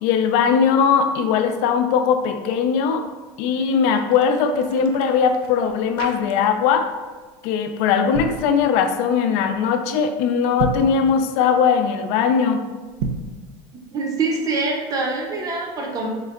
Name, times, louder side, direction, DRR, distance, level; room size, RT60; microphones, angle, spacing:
voice 1, 0.0-3.0 3.4-6.9 7.4-12.6, left 6 dB, 70° left, 6 dB, 0.4 m, -19 dB
sound 1, 3.9-6.8 7.0-7.3 7.9-8.4 10.4-11.0 12.9-13.4, right 4 dB, 90° right, 0.4 m, -31 dB
voice 2, 13.9-16.1, right 3 dB, 30° right, 0 dB, 0.6 m, -24 dB
3.7 x 2.1 x 3.6 m, 1.3 s
cardioid pair, 145°, 12 cm